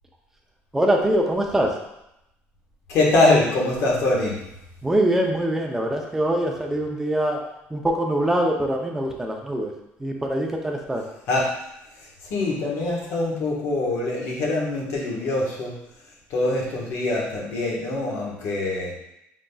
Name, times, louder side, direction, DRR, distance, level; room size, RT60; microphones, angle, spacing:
voice 1, 0.7-1.8 4.8-7.4 7.7-9.7 10.0-11.1, right 1 dB, 10° right, 1 dB, 0.6 m, -23 dB
voice 2, 2.9-4.4 11.3-11.5 11.9-15.8 16.3-18.9, left 2 dB, 65° left, -3 dB, 1.4 m, -23 dB
5.1 x 3.8 x 2.3 m, 0.84 s
cardioid pair, 140°, 5 cm